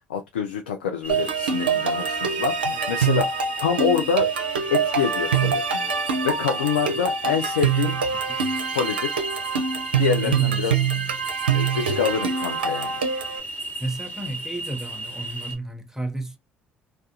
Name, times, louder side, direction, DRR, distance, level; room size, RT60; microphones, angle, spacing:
voice 1, 0.1-4.3 4.7-5.6 6.2-8.0 8.7-9.2 10.0-10.8 11.5-12.9, left 7 dB, 85° left, 0.4 m, -26 dB
sound 1, 1.0-15.5, right 2 dB, 35° left, 1.1 m, -35 dB
sound 2, 1.1-13.4, right 6 dB, 90° right, 0.4 m, -25 dB
voice 2, 10.2-11.2 13.8-16.4, right 1 dB, 10° right, 0.6 m, -33 dB
2.4 x 2.2 x 2.6 m
hypercardioid pair, 60°, 5 cm